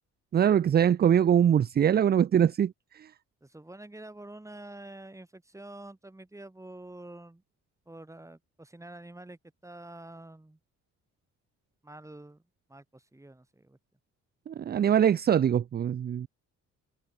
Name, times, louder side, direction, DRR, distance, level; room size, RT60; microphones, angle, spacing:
voice 1, 0.3-3.1 14.5-16.3, right 9 dB, 35° right, 0.4 m, -23 dB
voice 2, 3.4-7.4 7.9-10.6 11.8-12.4 12.7-13.8, right 1 dB, 10° right, 3.2 m, -47 dB
cardioid pair, 90°, 30 cm